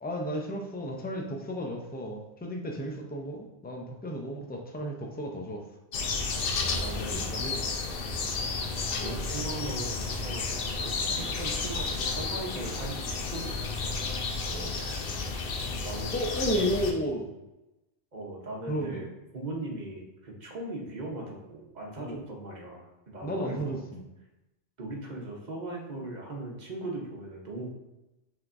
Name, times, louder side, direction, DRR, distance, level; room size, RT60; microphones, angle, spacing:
voice 1, 0.0-5.6 7.3-7.6 14.5-14.8 16.1-17.3 18.7-19.1 22.0-22.2 23.2-24.0, equal, 15° left, 1 dB, 0.3 m, -33 dB
sound 1, 5.9-16.9, left 4 dB, 60° left, 0.8 m, -32 dB
voice 2, 6.7-7.3 9.0-13.9 15.8-16.8 18.1-19.1 19.3-23.8 24.8-27.7, right 2 dB, 45° right, -1 dB, 1.0 m, -39 dB
5.7 x 3.6 x 2.5 m, 0.98 s
omnidirectional pair, 1.1 m